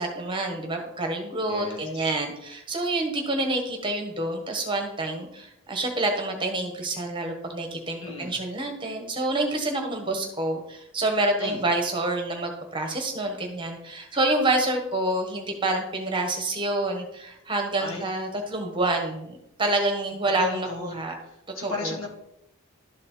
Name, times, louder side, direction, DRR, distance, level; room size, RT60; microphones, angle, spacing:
voice 1, 0.0-21.1 21.6-21.9, right 2 dB, 20° right, 3 dB, 1.2 m, -27 dB
voice 2, 1.5-1.9 8.0-8.3 11.4-11.6 17.8-18.1 20.4-21.0 21.5-22.1, left 3 dB, 55° left, -2 dB, 2.3 m, -33 dB
12.0 x 4.3 x 4.3 m, 0.81 s
head